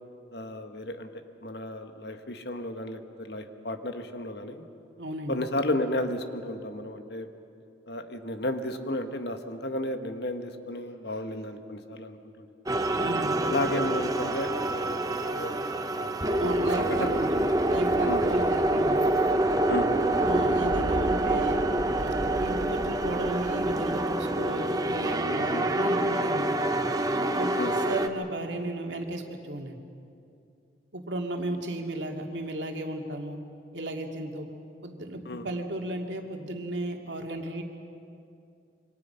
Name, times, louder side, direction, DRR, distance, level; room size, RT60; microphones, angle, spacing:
voice 1, 0.3-1.1 1.4-4.7 5.3-7.3 7.9-12.7 13.4-15.0 15.3-16.4 16.8-17.2 18.0-18.2 19.7-19.9 25.5-25.7 27.6-27.8 35.2-35.5, left 1 dB, 65° left, 7 dB, 1.5 m, -33 dB
voice 2, 5.0-5.4 13.0-13.5 16.4-17.3 17.6-19.1 20.2-21.6 21.9-26.9 27.4-29.8 30.9-33.4 33.7-34.5 34.8-37.6, right 1 dB, 85° right, 2 dB, 2.5 m, -34 dB
sound 1, 12.7-28.1, right 1 dB, 20° right, 1.0 m, -26 dB
27.5 x 25.0 x 5.8 m, 2.5 s
head